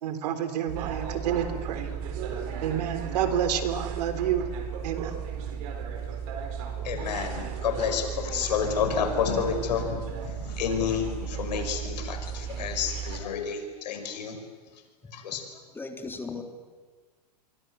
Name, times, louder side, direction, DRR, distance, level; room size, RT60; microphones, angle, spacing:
voice 1, 0.0-1.9 2.6-4.5 4.8-5.2, right 9 dB, 70° right, 10 dB, 3.8 m, -29 dB
sound 1, 0.7-13.2, right 7 dB, 55° right, 4.8 m, -35 dB
voice 2, 6.8-14.4 15.1-15.4, left 7 dB, 80° left, 6 dB, 5.7 m, -30 dB
voice 3, 15.7-16.4, left 4 dB, 10° left, 5 dB, 3.4 m, -36 dB
27.5 x 23.5 x 8.2 m, 1.4 s
hypercardioid pair, 125°, 21 cm